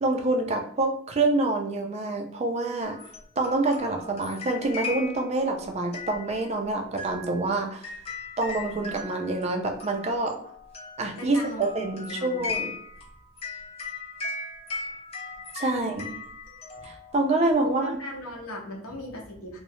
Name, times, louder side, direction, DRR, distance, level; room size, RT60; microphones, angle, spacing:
voice 1, 0.0-3.0 3.4-7.9 8.4-10.4 11.0-12.7 15.5-16.1 16.8-18.0, right 2 dB, 30° right, 3 dB, 0.3 m, -26 dB
sound 1, 2.8-17.5, left 4 dB, 30° left, 0.5 m, -38 dB
voice 2, 11.2-12.6 15.7-16.2 16.7-16.9 17.6-19.6, left 1 dB, 90° left, 0 dB, 0.8 m, -38 dB
3.0 x 2.0 x 2.6 m, 0.68 s
head